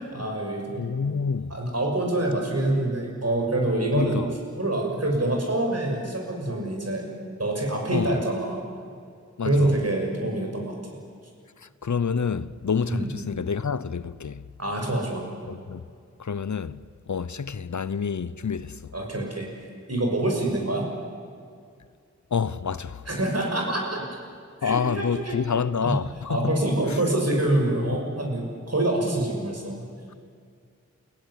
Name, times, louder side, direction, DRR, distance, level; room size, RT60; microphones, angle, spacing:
voice 1, 0.0-0.8 1.5-4.2 4.6-7.1 7.4-8.6 9.4-11.0 12.9-13.1 14.6-15.2 18.9-19.5 19.9-20.8 23.1-24.1 24.6-25.4 25.8-26.0 26.3-29.7, right 1 dB, 55° right, 6.4 m, -26 dB
voice 2, 0.8-1.5 3.9-4.3 7.9-8.2 9.4-9.8 11.6-14.4 15.5-15.8 16.2-16.8 17.1-18.9 22.3-23.1 24.6-26.6 26.8-27.0 27.8-28.0, left 6 dB, 75° left, 0.7 m, -28 dB
29.0 x 16.5 x 9.9 m
wide cardioid pair, 50°, 29 cm